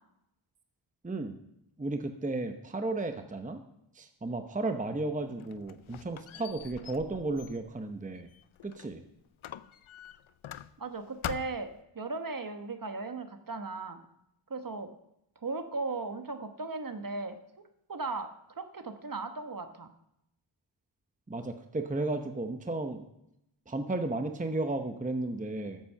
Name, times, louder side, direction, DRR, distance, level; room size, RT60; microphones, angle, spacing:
voice 1, 1.0-1.4 1.8-3.6 3.9-8.3 8.6-9.0 21.3-23.0 23.7-25.8, right 2 dB, 15° right, 7 dB, 0.8 m, -34 dB
Squeak, 5.1-9.0 9.4-10.9 11.2-11.8, left 10 dB, 75° left, 0.6 m, -44 dB
voice 2, 10.8-14.0 14.5-14.9 15.4-17.4 17.9-19.9, right 3 dB, 40° right, 8 dB, 1.2 m, -37 dB
14.0 x 7.5 x 5.7 m, 0.81 s
wide cardioid pair, 100°, 50 cm